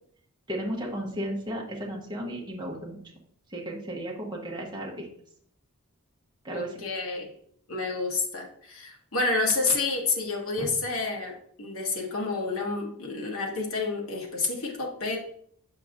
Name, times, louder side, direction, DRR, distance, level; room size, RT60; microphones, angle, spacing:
voice 1, 0.5-3.0 3.5-5.1 6.4-6.7 10.6-10.7, right 1 dB, 20° right, -2 dB, 1.0 m, -34 dB
voice 2, 6.5-7.3 7.7-15.2, left 3 dB, 65° left, 0 dB, 1.3 m, -29 dB
7.3 x 5.3 x 2.4 m, 0.66 s
head